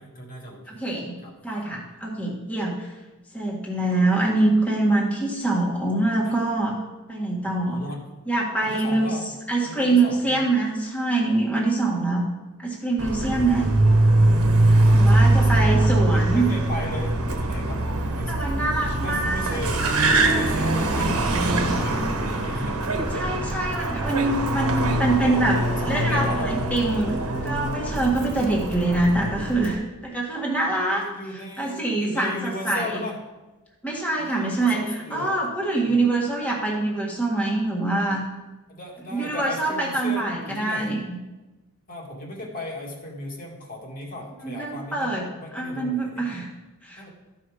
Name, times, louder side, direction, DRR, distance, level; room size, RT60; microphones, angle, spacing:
voice 1, 0.0-0.8 1.2-1.3 6.2-6.4 7.4-8.0 8.6-9.3 9.6-10.5 15.0-18.7 19.0-19.8 20.3-22.8 25.1-25.4 25.8-26.5 30.9-33.2 34.2-35.4 35.8-36.0 38.7-41.0 41.9-46.4 47.0-47.1, left 1 dB, 40° left, -2 dB, 2.0 m, -37 dB
voice 2, 0.7-1.1 1.4-2.9 3.3-6.8 7.1-7.8 8.3-9.1 9.5-12.2 12.6-13.7 14.9-16.5 18.3-19.6 22.5-22.6 23.1-27.1 27.4-31.0 31.6-33.0 33.8-38.2 39.1-41.1 44.4-45.3 45.5-46.5 46.8-47.0, right 2 dB, 5° left, -4 dB, 1.7 m, -24 dB
Car, 13.0-29.7, right 1 dB, 75° right, 1.4 m, -22 dB
14.0 x 5.6 x 4.9 m, 1.1 s
head